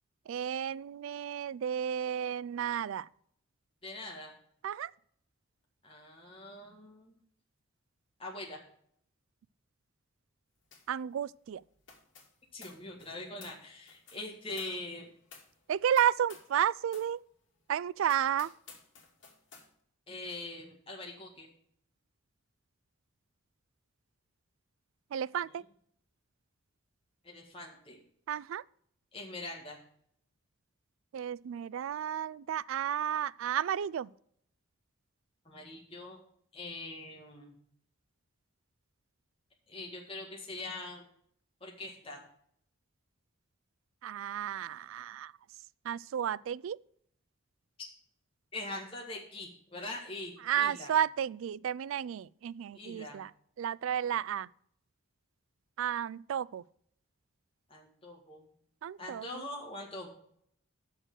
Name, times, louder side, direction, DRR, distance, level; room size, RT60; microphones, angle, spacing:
voice 1, 0.3-3.1 4.6-4.9 10.9-11.6 15.7-17.2 17.7-18.5 25.1-25.6 28.3-28.6 31.1-34.1 44.0-45.3 45.9-46.8 50.4-53.3 53.6-54.5 55.8-56.6 58.8-59.4, right 9 dB, 75° right, 0.3 m, -32 dB
voice 2, 3.8-4.3 5.8-7.1 8.2-8.6 12.5-15.1 20.1-21.5 25.5-25.6 27.2-28.0 29.1-29.8 35.5-36.2 36.5-37.6 39.7-41.0 41.6-42.2 47.8-47.9 48.5-50.9 52.8-53.2 57.7-58.5 59.0-60.1, left 2 dB, 25° left, 1.7 m, -43 dB
sound 1, 10.7-11.0 11.2-16.6 16.9-17.1 17.6-17.7 18.0-19.7, left 5 dB, 55° left, 2.5 m, -55 dB
6.6 x 6.3 x 7.6 m
head